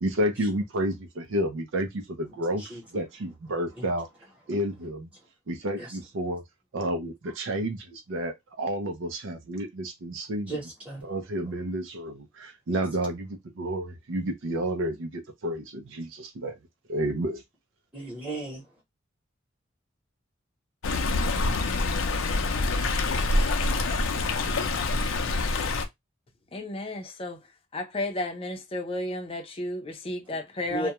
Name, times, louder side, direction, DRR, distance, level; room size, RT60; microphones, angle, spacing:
voice 1, 0.0-4.1 4.5-5.1 5.5-6.4 6.7-10.5 11.0-16.6 16.9-17.4, right 1 dB, 75° right, 0.5 m, -30 dB
voice 2, 10.5-11.1 17.9-18.6 30.7-30.9, right 2 dB, 5° right, 0.9 m, -35 dB
Stream, 20.8-25.9, left 2 dB, 85° left, 0.5 m, -26 dB
voice 3, 26.5-30.9, left 1 dB, 30° left, 0.5 m, -33 dB
2.3 x 2.1 x 2.9 m
head